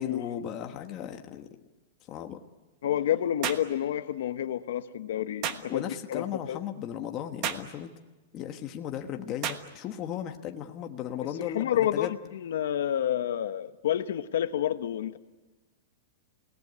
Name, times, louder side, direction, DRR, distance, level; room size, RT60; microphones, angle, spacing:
voice 1, 0.0-1.6 2.1-2.4 5.7-7.9 8.3-12.2, left 10 dB, 25° left, 5 dB, 1.3 m, -36 dB
voice 2, 2.8-6.6 11.4-15.2, left 11 dB, 70° left, 10 dB, 1.1 m, -29 dB
sound 1, 3.4-3.7 5.4-5.7 7.4-7.7 9.4-9.7, right 9 dB, 30° right, 1.3 m, -32 dB
28.0 x 18.5 x 9.6 m, 1.2 s
supercardioid pair, 175°, 0 cm